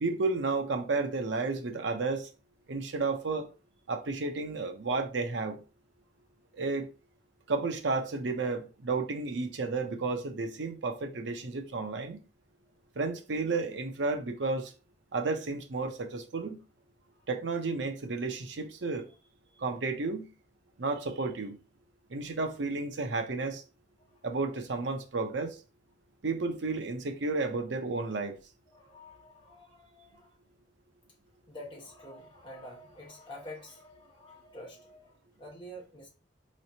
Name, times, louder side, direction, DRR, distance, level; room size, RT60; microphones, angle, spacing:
voice 1, 0.0-2.3 2.7-3.5 3.9-5.6 6.6-6.9 7.5-12.2 13.0-14.7 15.1-16.6 17.3-19.1 19.6-20.3 20.8-21.6 22.1-23.6 24.2-25.6 26.2-28.4, right 3 dB, 70° right, 0.6 m, -32 dB
voice 2, 28.7-30.4 31.5-36.1, left 1 dB, 25° left, 1.4 m, -48 dB
4.1 x 3.1 x 2.7 m
head